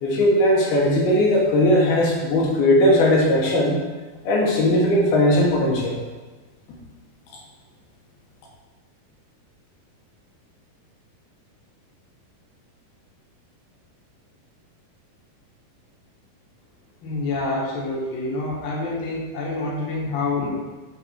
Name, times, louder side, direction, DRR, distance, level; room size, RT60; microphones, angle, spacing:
voice 1, 0.0-3.8 4.2-6.0, left 1 dB, 80° left, -2 dB, 3.1 m, -18 dB
voice 2, 17.0-20.5, left 2 dB, 50° left, -5 dB, 1.6 m, -27 dB
7.8 x 4.1 x 4.4 m, 1.3 s
omnidirectional pair, 4.3 m